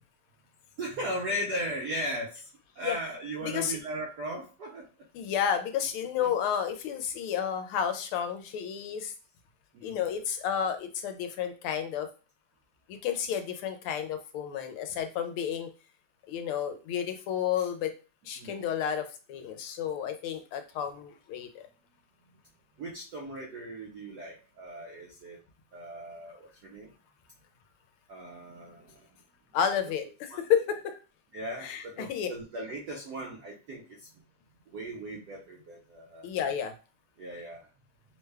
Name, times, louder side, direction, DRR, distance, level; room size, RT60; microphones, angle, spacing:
voice 1, 0.8-2.5 2.8-4.9 6.2-6.3 9.7-10.0 18.4-18.6 22.8-25.4 25.7-26.9 28.1-29.1 30.3-30.4 31.3-34.1 34.7-36.3 37.2-37.7, right 1 dB, 75° right, -1 dB, 0.9 m, -37 dB
voice 2, 3.4-3.8 5.1-9.1 9.8-12.1 12.9-15.7 16.3-17.9 18.3-21.6 29.5-31.0 31.6-32.3 36.2-36.7, left 8 dB, 80° left, 8 dB, 1.4 m, -31 dB
3.5 x 2.2 x 3.2 m, 0.33 s
omnidirectional pair, 2.4 m